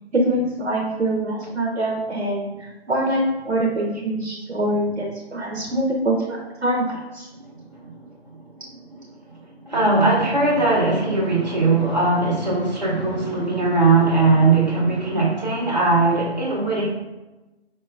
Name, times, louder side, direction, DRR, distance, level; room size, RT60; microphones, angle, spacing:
voice 1, 0.1-7.3, right 1 dB, 85° right, -2 dB, 0.8 m, -24 dB
voice 2, 9.7-16.9, right 3 dB, 40° right, -6 dB, 1.2 m, -19 dB
4.8 x 2.9 x 2.4 m, 1.1 s
figure-of-eight pair, 155°, 33 cm